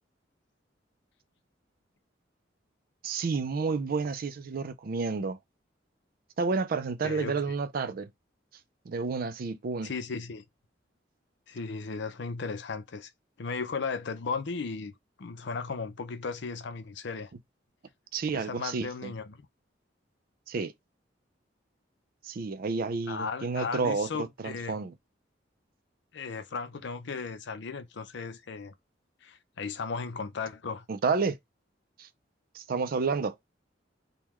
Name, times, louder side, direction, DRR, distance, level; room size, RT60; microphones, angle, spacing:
voice 1, 3.0-5.4 6.4-8.1 8.9-9.9 18.1-19.1 20.5-20.7 22.2-24.9 30.9-31.4 32.0-32.1 32.5-33.3, right 4 dB, 50° right, 0.4 m, -30 dB
voice 2, 7.0-7.4 9.8-10.4 11.5-13.1 13.4-14.9 15.2-17.3 18.3-19.5 23.1-24.8 26.1-28.7 29.2-30.8, left 4 dB, 70° left, 0.6 m, -36 dB
3.6 x 2.3 x 3.0 m
head